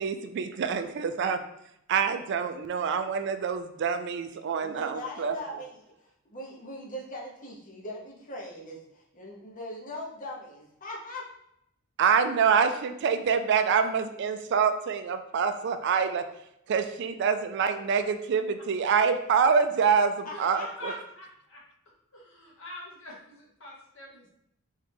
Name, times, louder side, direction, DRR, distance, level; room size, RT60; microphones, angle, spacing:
voice 1, 0.0-1.4 1.9-5.6 12.0-16.2 16.7-20.9, right 6 dB, 55° right, 9 dB, 0.3 m, -26 dB
voice 2, 4.6-11.2 20.2-21.0, left 1 dB, 40° left, -2 dB, 0.9 m, -40 dB
voice 3, 20.8-21.6 22.1-24.3, left 1 dB, 65° left, -3 dB, 1.2 m, -45 dB
3.6 x 3.2 x 3.4 m, 0.77 s
head